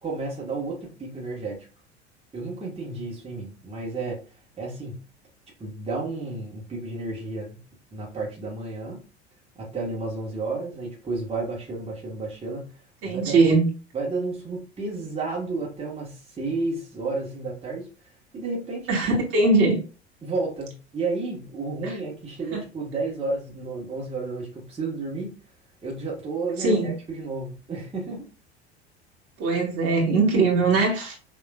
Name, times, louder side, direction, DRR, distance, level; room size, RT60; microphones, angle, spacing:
voice 1, 0.0-1.6 2.3-4.2 4.6-5.0 5.6-7.6 7.9-9.0 9.5-12.8 13.0-13.3 13.9-17.9 18.3-19.2 20.2-25.3 25.8-28.3, right 3 dB, 20° right, 1.6 m, -32 dB
voice 2, 13.0-13.7 18.9-19.8 21.8-21.9 22.5-22.6 26.6-26.9 29.4-31.2, right 3 dB, 45° right, 1.8 m, -21 dB
6.2 x 3.0 x 2.4 m
figure-of-eight pair, 75°, 33 cm